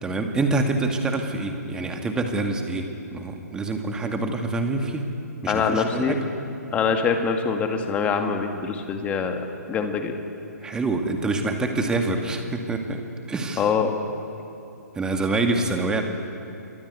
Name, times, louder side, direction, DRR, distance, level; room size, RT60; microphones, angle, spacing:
voice 1, 0.0-5.1 5.4-6.2 10.6-13.6 15.0-16.0, right 2 dB, 10° right, 4 dB, 2.1 m, -26 dB
voice 2, 5.5-6.2 6.7-10.1 13.6-13.9, left 6 dB, 15° left, 5 dB, 2.1 m, -24 dB
28.0 x 23.5 x 8.3 m, 2.8 s
figure-of-eight pair, 125°, 9 cm